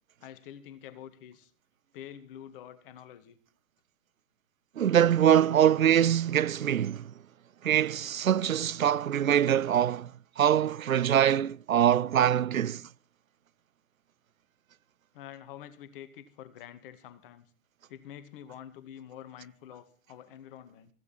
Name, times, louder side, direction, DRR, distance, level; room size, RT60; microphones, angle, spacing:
voice 1, 0.2-1.5 1.9-3.4 15.1-17.5 17.9-20.9, left 10 dB, 40° left, 2.1 m, -47 dB
voice 2, 4.8-7.1 7.6-12.9, right 10 dB, 80° right, 0.6 m, -24 dB
15.5 x 15.5 x 4.5 m
figure-of-eight pair, 120°, 40 cm